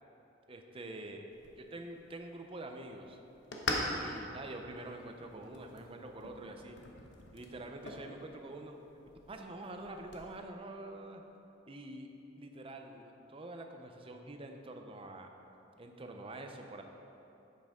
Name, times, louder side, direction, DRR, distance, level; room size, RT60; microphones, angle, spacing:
voice 1, 0.5-1.3 1.6-3.2 3.6-6.8 7.3-8.8 9.3-11.2 11.7-12.1 12.4-15.3 15.8-16.8, right 2 dB, 30° right, 4 dB, 0.6 m, -46 dB
sound 1, 1.3-10.3, left 2 dB, 65° left, 1.0 m, -43 dB
8.9 x 7.7 x 3.6 m, 2.9 s
head